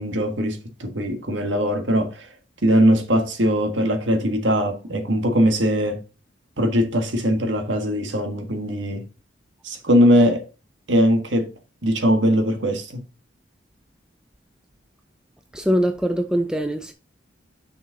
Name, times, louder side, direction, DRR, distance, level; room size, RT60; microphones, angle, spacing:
voice 1, 0.0-2.3 2.6-6.0 6.6-9.0 9.6-10.4 10.9-11.5 11.8-13.0, equal, 75° right, 1.6 m, -20 dB
voice 2, 15.5-16.9, equal, 5° right, 0.4 m, -22 dB
6.4 x 6.0 x 3.8 m
head